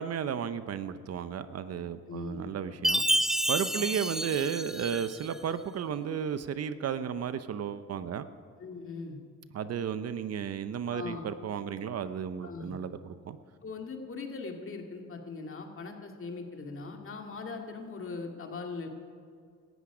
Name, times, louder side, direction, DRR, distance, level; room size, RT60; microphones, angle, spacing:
voice 1, 0.0-3.0 3.5-8.3 9.5-13.4, right 8 dB, 55° right, 12 dB, 0.8 m, -33 dB
voice 2, 2.1-2.5 3.7-4.0 8.6-9.2 10.9-11.2 12.4-12.7 13.6-18.9, left 4 dB, 45° left, 3 dB, 2.2 m, -40 dB
Chime, 2.8-5.3, right 1 dB, ahead, 0.3 m, -29 dB
17.5 x 13.5 x 5.0 m, 2.2 s
cardioid pair, 90°, 30 cm